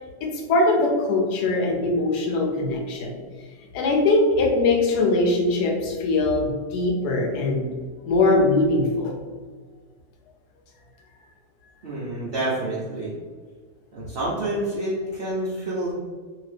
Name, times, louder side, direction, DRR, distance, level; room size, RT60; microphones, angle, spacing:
voice 1, 0.2-3.2 3.7-7.7 8.1-9.2, left 2 dB, 75° left, 2 dB, 1.1 m, -21 dB
voice 2, 11.8-13.1 13.9-15.9, right 1 dB, 60° right, -7 dB, 0.6 m, -28 dB
2.8 x 2.8 x 3.2 m, 1.5 s
omnidirectional pair, 1.8 m